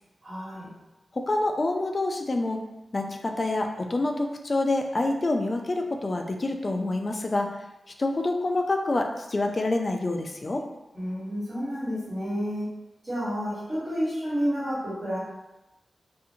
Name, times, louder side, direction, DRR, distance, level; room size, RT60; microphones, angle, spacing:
voice 1, 0.2-0.7 10.9-12.6 13.0-15.2, equal, 40° right, -14 dB, 1.4 m, -30 dB
voice 2, 1.1-2.6 2.9-7.5 8.0-10.6, left 2 dB, 40° left, 3 dB, 0.3 m, -27 dB
2.6 x 2.4 x 2.7 m, 0.99 s
wide cardioid pair, 90°, 0 cm